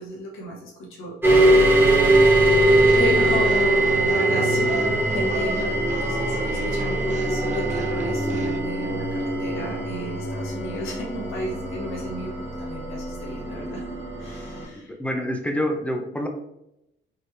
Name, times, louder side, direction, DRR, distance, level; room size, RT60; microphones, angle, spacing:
voice 1, 0.0-1.7 2.9-13.8 14.2-14.9, equal, 90° left, -3 dB, 1.4 m, -33 dB
sound 1, 1.2-14.6, right 1 dB, 10° right, 1.1 m, -22 dB
sound 2, 2.9-8.6, right 5 dB, 35° right, 0.4 m, -34 dB
voice 2, 14.7-16.3, equal, 5° left, 3 dB, 0.6 m, -27 dB
4.3 x 3.2 x 3.2 m, 0.84 s
cardioid pair, 140°, 20 cm